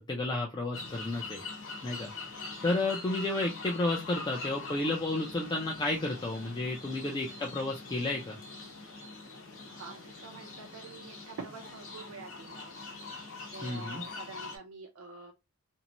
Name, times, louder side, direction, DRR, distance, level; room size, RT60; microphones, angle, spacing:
voice 1, 0.1-1.4 1.8-2.1 2.6-8.4 13.6-14.0, left 2 dB, 20° left, -2 dB, 0.4 m, -32 dB
sound 1, 0.7-14.6, left 3 dB, 65° left, 0.9 m, -43 dB
voice 2, 9.7-13.1 13.5-15.3, right 4 dB, 80° right, 3 dB, 0.4 m, -47 dB
2.6 x 2.1 x 2.9 m, 0.23 s
head